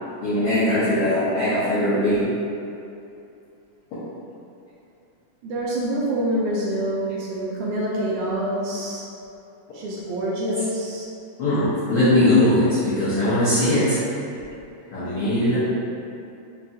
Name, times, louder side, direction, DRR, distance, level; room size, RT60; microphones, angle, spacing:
voice 1, 0.2-2.3 11.4-14.0 14.9-15.6, left 1 dB, 85° left, -13 dB, 1.3 m, -20 dB
voice 2, 5.4-9.1 9.7-11.1, right 1 dB, 80° right, -5 dB, 1.8 m, -26 dB
5.3 x 2.3 x 2.6 m, 2.7 s
omnidirectional pair, 3.7 m